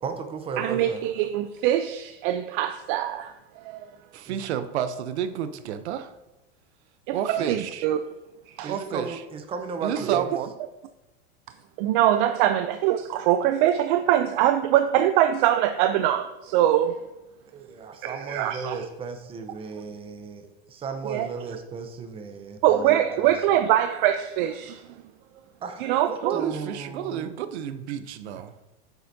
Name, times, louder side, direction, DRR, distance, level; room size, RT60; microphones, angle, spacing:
voice 1, 0.0-1.0 4.3-4.4 7.4-7.6 8.6-10.3 17.5-23.3 25.6-27.3, right 5 dB, 15° right, 6 dB, 0.7 m, -35 dB
voice 2, 0.6-3.3 3.6-3.8 7.1-8.0 8.5-8.7 10.1-10.2 11.8-17.0 18.0-18.8 21.0-21.3 22.6-24.8 25.8-26.5, right 12 dB, 50° right, 10 dB, 0.4 m, -23 dB
voice 3, 4.1-6.1 7.1-7.9 8.7-9.2 9.8-10.5 26.2-28.5, right 9 dB, 85° right, 11 dB, 0.7 m, -30 dB
8.0 x 6.9 x 2.7 m, 1.0 s
supercardioid pair, 140°, 32 cm